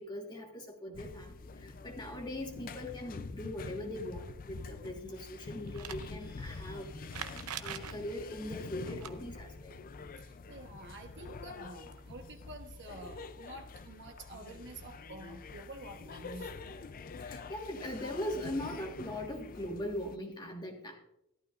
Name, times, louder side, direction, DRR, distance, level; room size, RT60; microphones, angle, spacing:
voice 1, 0.0-7.1 7.6-9.8 17.3-20.9, left 1 dB, 20° left, 1 dB, 1.5 m, -40 dB
sound 1, 0.9-20.2, left 4 dB, 40° left, 0.4 m, -46 dB
sound 2, 5.7-6.1 7.1-8.0 8.8-9.1 11.6-11.7 11.9-12.0 13.1-13.2, right 9 dB, 85° right, 0.7 m, -42 dB
voice 2, 10.2-16.7, right 2 dB, 55° right, 4 dB, 1.1 m, -49 dB
14.0 x 11.5 x 2.5 m, 0.84 s
head